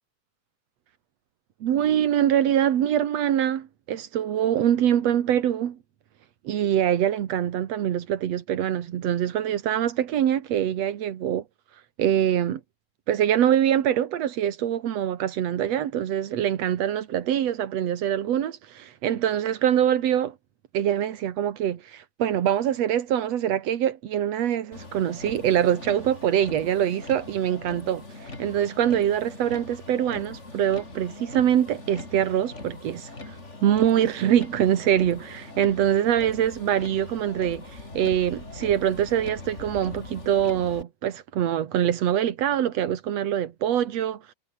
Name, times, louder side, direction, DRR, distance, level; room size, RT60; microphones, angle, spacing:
voice 1, 1.6-5.8 6.4-11.4 12.0-12.6 13.1-20.3 20.7-33.4 33.6-44.3, right 10 dB, 75° right, 1.5 m, -24 dB
Motor vehicle (road), 24.7-40.8, left 2 dB, 15° left, 3.4 m, -41 dB
omnidirectional pair, 5.3 m